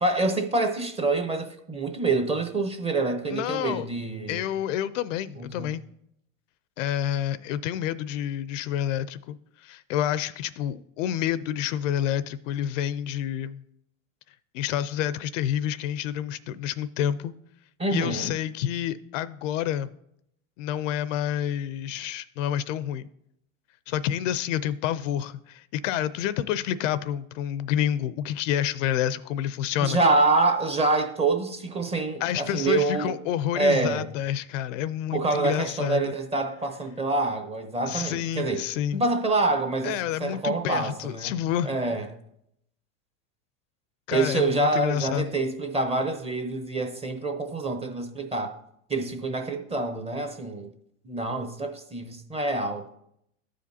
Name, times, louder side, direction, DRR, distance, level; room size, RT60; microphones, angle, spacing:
voice 1, 0.0-4.4 5.4-5.7 17.8-18.3 29.8-33.1 33.6-34.0 35.1-38.6 38.9-39.9 40.2-41.3 41.6-42.1 44.1-48.6 48.9-50.7 51.0-52.8, right 3 dB, 15° right, 0.7 m, -26 dB
voice 2, 3.3-3.9 4.3-5.8 6.8-13.6 14.5-17.3 17.9-19.9 20.6-23.1 23.9-30.0 32.2-36.1 37.9-39.0 39.8-41.7 44.1-45.3, left 10 dB, 70° left, 0.5 m, -28 dB
13.5 x 5.0 x 2.7 m
supercardioid pair, 120°, 39 cm